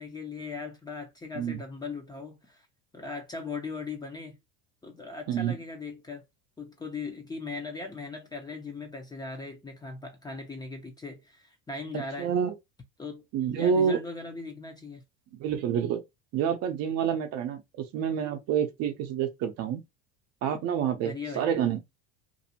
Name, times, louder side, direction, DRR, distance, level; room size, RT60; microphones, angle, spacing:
voice 1, 0.0-2.7 2.9-4.4 4.8-6.2 6.6-12.3 13.0-13.2 13.5-15.0 21.0-21.5, left 4 dB, 10° left, 0.5 m, -39 dB
voice 2, 12.2-12.5 13.3-14.0 15.4-16.0 16.3-19.8 20.4-21.8, right 8 dB, 50° right, 0.6 m, -28 dB
2.6 x 2.0 x 2.8 m
supercardioid pair, 120°, 33 cm